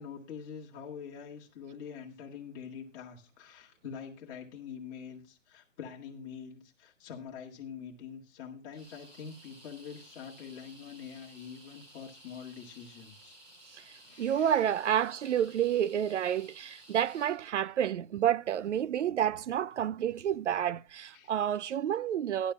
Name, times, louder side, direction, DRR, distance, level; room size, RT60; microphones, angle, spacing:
voice 1, 0.0-13.4 14.0-14.6 21.1-21.3, left 7 dB, 15° left, 1.8 m, -45 dB
sound 1, 8.7-17.4, right 1 dB, 25° right, 6.2 m, -55 dB
voice 2, 13.7-22.5, right 10 dB, 75° right, 0.5 m, -29 dB
18.0 x 11.5 x 2.3 m
hypercardioid pair, 170°, 37 cm